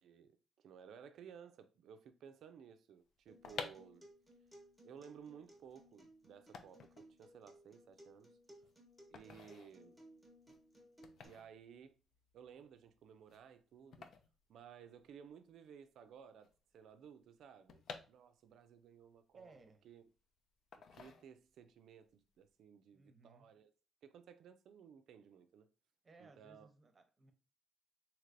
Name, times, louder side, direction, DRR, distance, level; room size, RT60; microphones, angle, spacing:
voice 1, 0.0-4.0 4.8-8.4 9.1-10.0 11.2-11.9 12.3-14.1 14.5-19.6 19.8-20.0 20.9-23.7 24.0-25.7 26.2-26.7, right 7 dB, 75° right, 0.3 m, -57 dB
sound 1, 3.2-15.3 15.6-15.7 15.9-18.7 19.1-20.2 20.7-21.7 22.1-22.4, left 6 dB, 65° left, 0.4 m, -53 dB
Acoustic guitar, 3.3-11.3, equal, ahead, 1.0 m, -62 dB
voice 2, 19.3-19.8 22.9-23.5 26.0-27.3, right 3 dB, 35° right, 0.7 m, -62 dB
3.2 x 2.8 x 2.4 m
cardioid pair, 90°, 0 cm